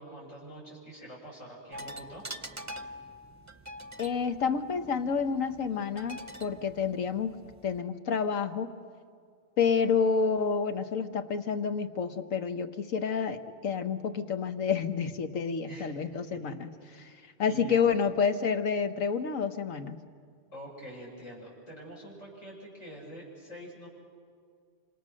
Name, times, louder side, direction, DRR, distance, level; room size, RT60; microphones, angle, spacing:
voice 1, 0.0-2.2 15.6-17.7 20.5-23.9, right 1 dB, 70° left, -5 dB, 7.1 m, -46 dB
sound 1, 1.7-7.8, right 1 dB, 15° right, 0.7 m, -45 dB
voice 2, 4.0-7.3 7.6-8.7 9.6-16.7 17.0-17.1 17.4-20.0, left 6 dB, 85° left, 8 dB, 1.5 m, -29 dB
27.0 x 27.0 x 6.5 m, 2.2 s
omnidirectional pair, 1.3 m